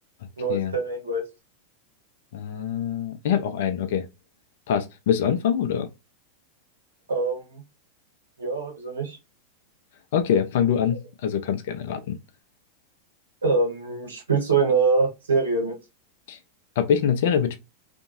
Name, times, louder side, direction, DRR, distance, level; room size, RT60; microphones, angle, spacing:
voice 1, 0.4-1.2 7.1-7.6 8.4-9.2 13.4-15.8, right 4 dB, 70° right, 1.2 m, -24 dB
voice 2, 2.3-4.0 4.7-5.9 10.1-12.2 16.3-16.4 16.8-17.6, left 8 dB, 55° left, 0.5 m, -24 dB
2.7 x 2.6 x 2.5 m
figure-of-eight pair, 90°, 0 cm